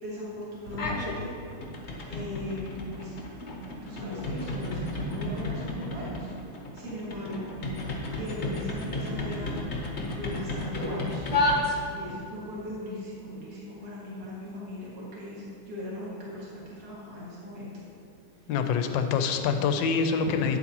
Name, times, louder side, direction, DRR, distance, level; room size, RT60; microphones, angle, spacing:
voice 1, 0.0-1.3 2.1-2.7 2.9-3.2 3.8-6.3 6.7-7.5 8.2-9.7 10.2-11.2 11.9-17.7 20.2-20.3, left 1 dB, 45° right, -7 dB, 2.5 m, -38 dB
sound 1, 0.7-1.2 1.5-12.2, left 1 dB, 45° left, 0.9 m, -32 dB
voice 2, 18.5-20.6, left 6 dB, 70° left, 7 dB, 1.2 m, -25 dB
10.0 x 8.1 x 3.0 m, 2.6 s
omnidirectional pair, 2.3 m